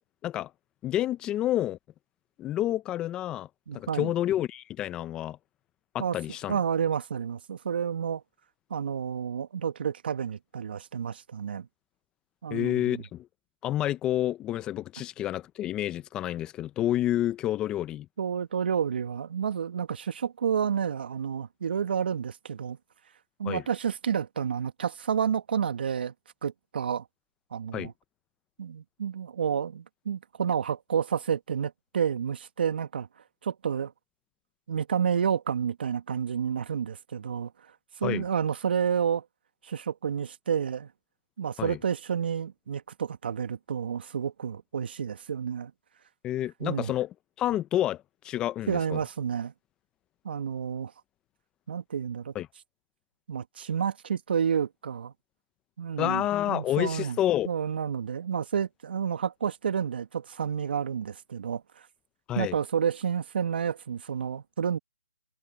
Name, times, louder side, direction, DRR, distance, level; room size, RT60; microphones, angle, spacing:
voice 1, 0.8-1.8 2.4-3.5 3.7-5.4 5.9-6.6 12.5-13.3 13.6-18.1 23.4-23.6 27.7-27.9 38.0-38.2 41.6-41.8 46.2-47.1 47.4-49.0 52.3-52.5 56.0-57.5 62.3-62.6, left 13 dB, 10° left, 0.7 m, -29 dB
voice 2, 3.7-4.1 6.0-6.2 6.5-8.2 8.7-11.7 12.4-13.0 18.2-22.8 23.4-26.1 26.4-27.1 27.5-27.9 28.6-33.1 33.4-33.9 34.7-37.5 38.0-39.2 39.6-40.9 41.4-45.7 46.6-46.9 48.7-49.5 50.2-50.9 51.7-52.3 53.3-55.1 55.8-57.2 57.4-61.6 62.4-64.8, right 7 dB, 50° right, 1.9 m, -30 dB
hypercardioid pair, 155°, 7 cm